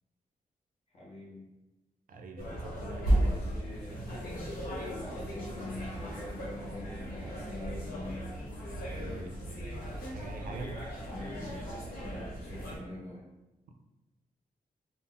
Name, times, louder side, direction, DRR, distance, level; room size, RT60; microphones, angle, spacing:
voice 1, 0.9-1.5 3.2-4.1 4.8-8.3 11.1-11.6 12.0-13.2, left 2 dB, 45° left, -4 dB, 0.8 m, -44 dB
voice 2, 2.1-3.4 8.9-9.7 10.1-10.8 13.7-13.8, right 2 dB, 70° right, 4 dB, 0.4 m, -44 dB
sound 1, 2.4-12.8, right 1 dB, 85° left, 1.0 m, -35 dB
2.4 x 2.0 x 3.7 m, 1.0 s
wide cardioid pair, 140°, 15 cm